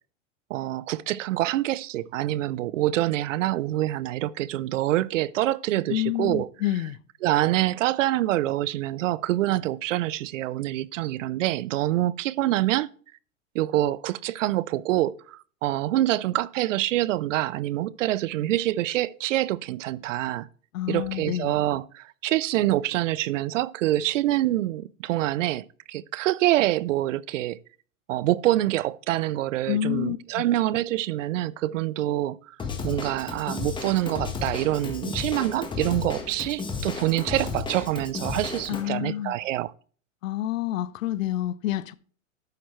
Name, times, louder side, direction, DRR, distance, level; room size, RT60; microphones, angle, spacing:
voice 1, 0.5-6.5 7.2-12.9 13.5-20.5 20.9-27.6 28.1-32.6 32.8-39.7, right 15 dB, 70° right, 0.6 m, -26 dB
voice 2, 5.9-7.0 20.7-21.5 29.7-30.4 38.7-39.4 40.2-41.9, left 13 dB, 75° left, 0.7 m, -28 dB
Drum kit / Drum, 32.6-38.8, left 5 dB, 10° left, 1.3 m, -33 dB
11.5 x 8.7 x 3.1 m
hypercardioid pair, 140°, 40 cm